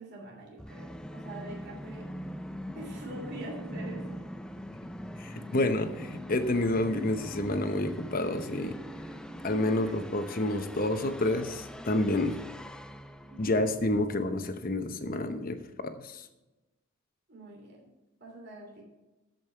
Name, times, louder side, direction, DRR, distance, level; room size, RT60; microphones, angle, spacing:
voice 1, 0.0-2.0 2.7-4.2 9.8-9.9 13.2-13.6 17.3-17.8 18.2-18.8, right 2 dB, 50° right, -1 dB, 2.9 m, -44 dB
Musical instrument, 0.6-14.3, equal, 5° left, 0.3 m, -42 dB
voice 2, 5.2-8.8 9.4-12.4 13.4-16.3, left 1 dB, 40° left, 8 dB, 0.8 m, -29 dB
13.5 x 5.4 x 4.5 m, 1.0 s
head